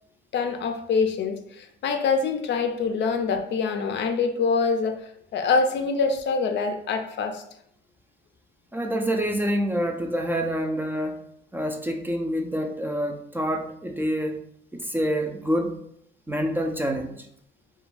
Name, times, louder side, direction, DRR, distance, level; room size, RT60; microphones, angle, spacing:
voice 1, 0.3-5.0 5.3-7.4, left 4 dB, 65° left, 6 dB, 0.4 m, -25 dB
voice 2, 8.7-11.2 11.5-14.4 14.7-15.8 16.3-17.2, equal, 10° right, 2 dB, 0.3 m, -27 dB
2.5 x 2.2 x 3.1 m, 0.70 s
cardioid pair, 90°, 20 cm